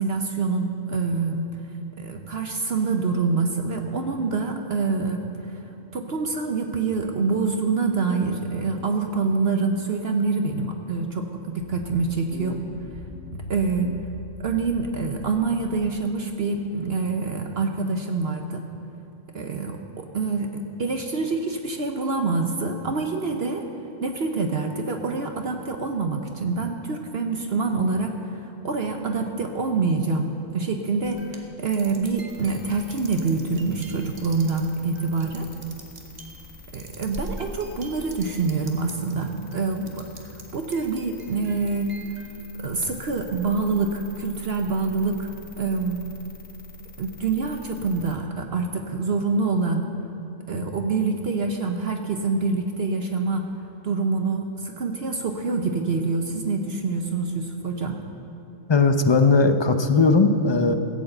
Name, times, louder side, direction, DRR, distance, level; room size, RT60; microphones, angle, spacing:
voice 1, 0.0-1.5 2.0-5.2 5.9-12.6 13.5-14.0 14.4-18.7 19.3-23.7 24.0-35.5 36.7-40.1 40.5-42.0 42.6-45.3 45.6-46.1 47.0-49.8 50.5-53.5 53.8-58.0, right 4 dB, 55° right, 4 dB, 1.0 m, -26 dB
sound 1, 11.6-16.3, left 3 dB, 60° left, 1.0 m, -41 dB
sound 2, 31.0-39.1 39.5-40.4 40.7-43.1, right 2 dB, 35° right, 1.3 m, -43 dB
sound 3, 32.3-48.2, left 3 dB, 85° left, 1.8 m, -46 dB
voice 2, 58.7-60.7, left 3 dB, 30° left, 7 dB, 0.5 m, -18 dB
16.0 x 8.4 x 7.8 m, 2.8 s
omnidirectional pair, 1.4 m